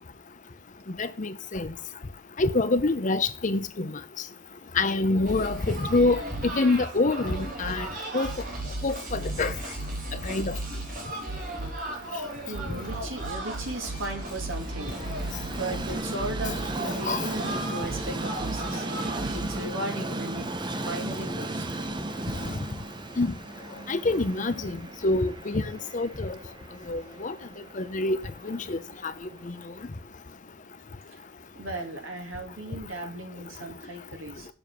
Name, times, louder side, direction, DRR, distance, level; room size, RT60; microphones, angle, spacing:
voice 1, 1.0-1.7 2.4-3.9 4.8-7.9 8.1-8.3 8.8-9.5 10.2-10.6 17.1-17.2 23.2-23.3 23.9-24.8 25.0-25.6 25.9-26.3 26.9-27.3 27.8-28.2 28.4-28.8 29.0-29.1 29.5-29.6, left 2 dB, 40° left, 0.6 m, -26 dB
sound 1, 5.3-19.6, right 2 dB, 45° right, 2.3 m, -35 dB
voice 2, 10.7-20.5 20.8-21.6 31.1-31.2 31.5-34.5, right 2 dB, 70° right, 2.5 m, -37 dB
Train, 11.7-29.8, right 2 dB, 20° right, 0.6 m, -36 dB
7.1 x 7.0 x 6.2 m
head